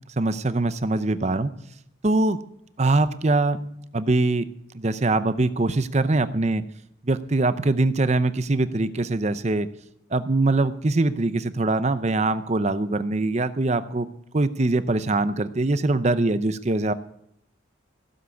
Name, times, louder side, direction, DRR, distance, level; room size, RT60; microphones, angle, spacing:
voice 1, 0.2-1.5 2.0-2.4 2.8-3.6 3.9-4.5 4.7-6.6 7.0-9.7 10.1-14.1 14.3-16.9, right 2 dB, 35° right, 13 dB, 0.6 m, -23 dB
16.0 x 7.4 x 8.3 m, 0.74 s
head